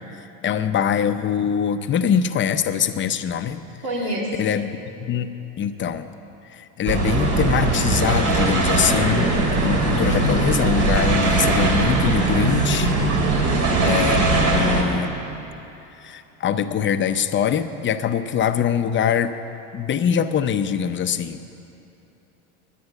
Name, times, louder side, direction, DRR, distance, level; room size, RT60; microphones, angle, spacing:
voice 1, 0.4-3.6 4.4-6.1 6.5-9.3 9.6-12.9 13.8-15.1 16.0-19.3 19.7-21.6, left 8 dB, 30° left, 9 dB, 0.6 m, -23 dB
voice 2, 3.8-4.6 13.3-14.0, right 1 dB, 65° right, -3 dB, 3.4 m, -29 dB
sound 1, 6.8-14.8, right 3 dB, 50° right, 2.5 m, -20 dB
10.0 x 9.6 x 9.6 m, 2.9 s
supercardioid pair, 105°, 39 cm